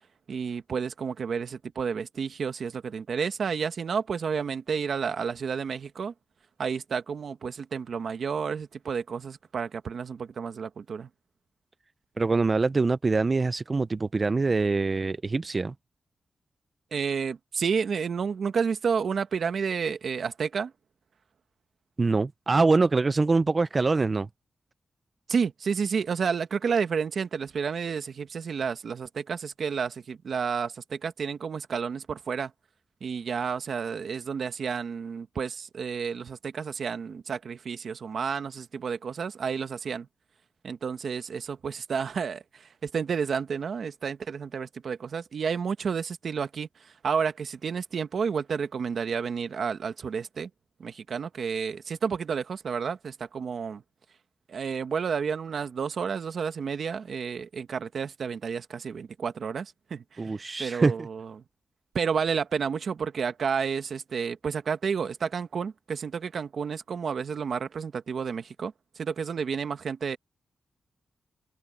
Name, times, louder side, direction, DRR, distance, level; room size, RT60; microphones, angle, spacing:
voice 1, 0.3-6.1 6.6-11.1 16.9-20.7 25.3-32.5 33.0-40.1 40.6-50.5 50.8-53.8 54.5-61.3 61.9-70.2, right 6 dB, 65° right, 1.5 m, -31 dB
voice 2, 12.2-15.7 22.0-24.3 60.2-61.1, right 3 dB, 35° right, 0.4 m, -24 dB
wide cardioid pair, 105°, 0 cm